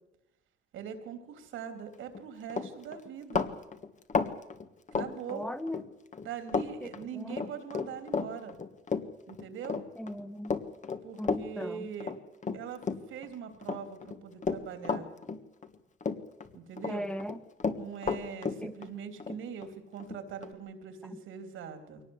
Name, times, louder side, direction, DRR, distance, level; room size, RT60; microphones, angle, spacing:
voice 1, 0.7-3.5 4.9-5.5 6.2-8.6 9.3-9.8 11.0-12.1 12.5-12.8 13.1-15.1 16.5-17.1 17.7-22.0, right 7 dB, 85° right, 8 dB, 3.4 m, -42 dB
Run, 2.0-2.2 2.5-5.8 6.1-6.7 6.9-13.3 13.6-15.7 16.0-16.9 17.2-20.5, left 5 dB, 40° left, 1.7 m, -33 dB
voice 2, 5.3-5.8 6.8-6.9 7.2-7.4 10.0-10.5 11.2-11.9 16.9-17.4 18.6-18.7, left 1 dB, 5° left, 12 dB, 1.6 m, -38 dB
22.5 x 18.5 x 8.1 m, 0.89 s
cardioid pair, 90°, 20 cm